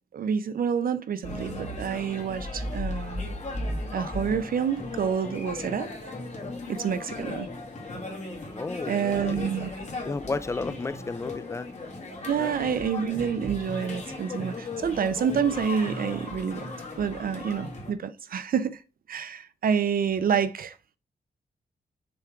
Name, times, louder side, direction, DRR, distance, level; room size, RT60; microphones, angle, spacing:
voice 1, 0.1-3.2 3.9-5.9 6.7-7.5 8.9-9.9 12.3-16.7 17.0-18.8 19.1-20.8, right 7 dB, 60° right, 0.5 m, -28 dB
sound 1, 1.2-17.9, left 2 dB, 45° left, 2.2 m, -36 dB
voice 2, 8.5-9.5 10.1-11.7 12.4-12.5, left 3 dB, 15° left, 0.3 m, -33 dB
7.0 x 3.5 x 4.5 m
wide cardioid pair, 165°, 17 cm